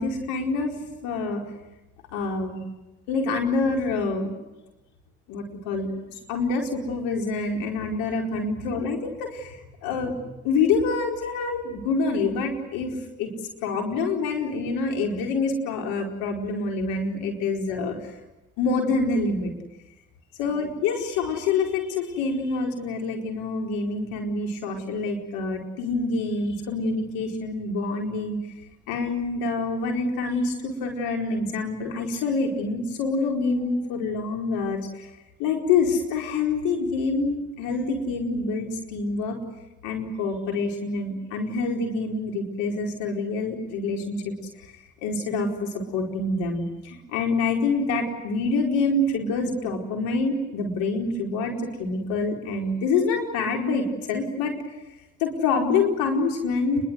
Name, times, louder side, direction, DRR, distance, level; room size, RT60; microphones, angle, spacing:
voice 1, 0.0-1.4 2.1-2.6 3.1-4.3 5.3-13.3 13.6-18.0 18.6-19.5 20.4-28.4 28.9-35.1 35.4-39.4 39.8-44.2 44.6-44.7 45.0-54.5 55.2-56.8, left 3 dB, 85° left, 1 dB, 4.7 m, -26 dB
30.0 x 22.5 x 8.1 m, 0.98 s
hypercardioid pair, 45°, 34 cm